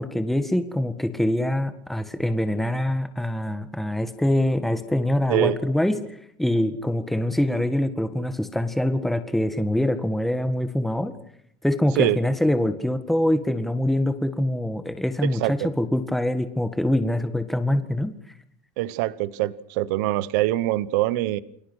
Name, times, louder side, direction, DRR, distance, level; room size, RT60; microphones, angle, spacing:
voice 1, 0.0-6.0 6.4-11.1 11.6-18.1, left 1 dB, ahead, 9 dB, 1.8 m, -24 dB
voice 2, 15.2-15.7 18.8-21.4, right 16 dB, 85° right, 18 dB, 0.9 m, -24 dB
29.5 x 22.0 x 6.3 m, 0.69 s
cardioid pair, 130°, 9 cm